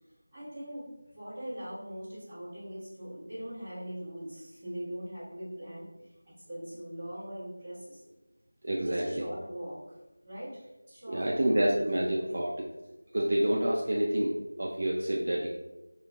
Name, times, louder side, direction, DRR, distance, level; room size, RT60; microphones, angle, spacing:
voice 1, 0.3-0.9 1.1-6.1 6.5-8.1 8.8-9.9 10.2-10.6 10.9-12.5, equal, 15° right, -14 dB, 1.5 m, -41 dB
voice 2, 8.6-9.3 11.1-12.5 13.1-15.5, right 1 dB, 45° right, -2 dB, 0.4 m, -28 dB
2.9 x 2.4 x 3.5 m, 1.0 s
figure-of-eight pair, 170°, 0 cm